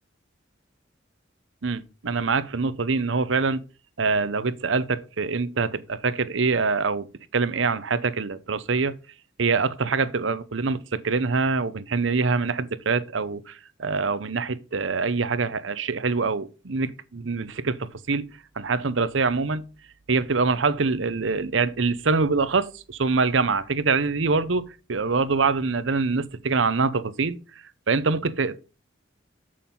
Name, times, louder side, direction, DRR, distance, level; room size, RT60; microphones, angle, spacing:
voice 1, 1.6-3.6 4.0-7.1 7.3-8.9 9.4-18.3 18.6-19.6 20.1-27.4 27.9-28.6, right 4 dB, 75° right, 0.8 m, -24 dB
7.5 x 6.5 x 5.4 m
head